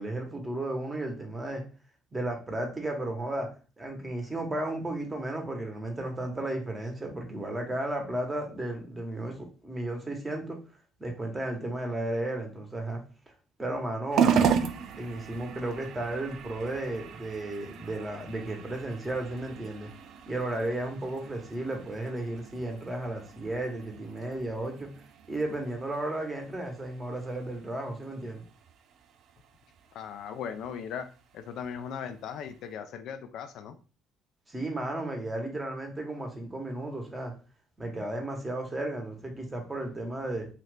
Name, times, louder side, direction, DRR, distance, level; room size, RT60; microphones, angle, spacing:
voice 1, 0.0-1.6 2.1-3.5 3.8-10.6 11.0-13.0 13.6-14.4 15.0-19.9 20.3-24.9 25.3-28.4 34.5-37.3 37.8-40.5, right 1 dB, 20° right, 2 dB, 1.1 m, -34 dB
sound 1, 14.1-32.7, right 7 dB, 65° right, 0.3 m, -35 dB
voice 2, 29.9-31.1 31.3-33.8, left 7 dB, 70° left, 8 dB, 0.4 m, -38 dB
2.8 x 2.4 x 3.4 m, 0.36 s
supercardioid pair, 85°, 0 cm